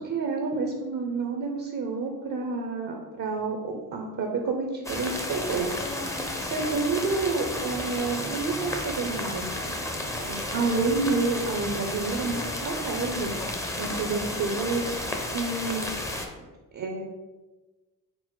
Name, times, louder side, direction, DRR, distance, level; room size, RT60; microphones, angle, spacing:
voice 1, 0.0-5.7 6.4-9.5 10.2-13.3 13.8-15.9 16.4-16.5 16.7-17.0, right 4 dB, 55° right, 2 dB, 0.6 m, -29 dB
sound 1, 4.8-16.3, left 1 dB, 10° left, 0.5 m, -32 dB
4.1 x 2.0 x 4.4 m, 1.2 s
cardioid pair, 85°, 36 cm